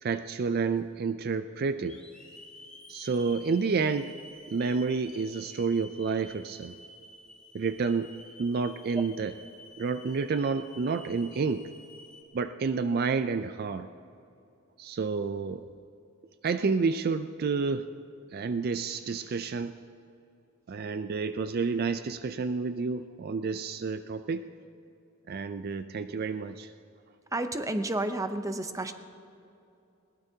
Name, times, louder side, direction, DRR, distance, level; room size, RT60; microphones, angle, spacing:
voice 1, 0.0-2.0 2.9-4.1 4.5-6.8 7.5-8.1 8.4-9.3 9.8-11.7 12.3-13.9 14.8-15.7 16.4-17.9 18.3-19.8 20.7-24.5 25.3-26.7, right 4 dB, 50° right, 10 dB, 0.4 m, -29 dB
Hiss / Alarm, 0.8-0.9 1.8-12.2, left 1 dB, 5° left, 2.4 m, -51 dB
voice 2, 27.3-28.9, right 2 dB, 15° right, 8 dB, 0.7 m, -31 dB
21.0 x 18.5 x 2.8 m, 2.7 s
head